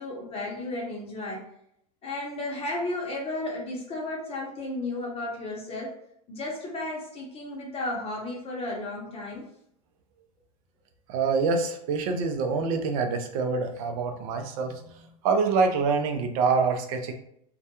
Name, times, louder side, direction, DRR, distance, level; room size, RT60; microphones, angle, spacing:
voice 1, 0.0-1.4 2.0-5.9 6.3-9.4, left 2 dB, 30° left, -2 dB, 0.7 m, -33 dB
voice 2, 11.1-14.8 15.2-17.1, right 4 dB, 60° right, 5 dB, 0.5 m, -25 dB
2.2 x 2.1 x 2.8 m, 0.72 s
hypercardioid pair, 100°, 20 cm